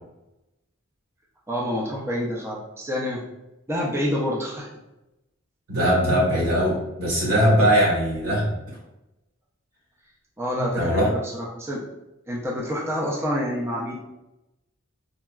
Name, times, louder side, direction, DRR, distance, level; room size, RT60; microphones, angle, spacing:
voice 1, 1.5-3.2 3.7-4.7 10.4-11.0 11.3-11.8 12.3-13.9, equal, 10° right, -4 dB, 0.4 m, -27 dB
voice 2, 5.7-8.5 10.5-11.1, equal, 90° right, -5 dB, 1.5 m, -20 dB
3.8 x 2.2 x 2.3 m, 0.94 s
head